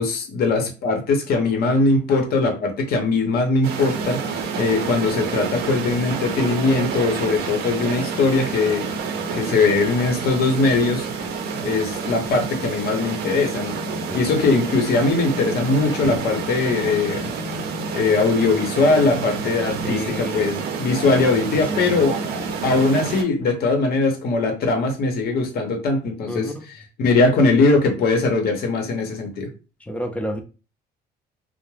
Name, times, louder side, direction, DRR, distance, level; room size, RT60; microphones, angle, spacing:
voice 1, 0.0-8.9 9.3-11.1 11.6-13.8 14.1-17.3 17.9-22.2 22.6-26.5 27.0-29.5, left 3 dB, 65° left, 0.8 m, -20 dB
sound 1, 3.6-23.2, right 5 dB, 70° right, 0.6 m, -28 dB
voice 2, 13.9-14.2 19.8-20.6 21.0-21.1 21.7-21.8 26.3-26.6 29.8-30.4, equal, 10° left, 0.4 m, -30 dB
2.2 x 2.0 x 3.2 m
cardioid pair, 110°, 17 cm